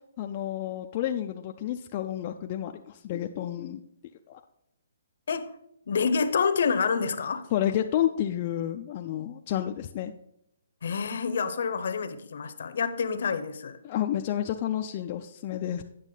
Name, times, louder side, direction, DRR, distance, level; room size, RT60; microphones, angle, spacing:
voice 1, 0.2-3.8 4.3-4.4 7.5-10.1 13.8-15.8, left 11 dB, 30° left, 0.3 m, -30 dB
voice 2, 5.9-7.5 10.8-13.8, left 5 dB, 60° left, 0.7 m, -27 dB
9.0 x 6.2 x 3.8 m
hypercardioid pair, 170°, 0 cm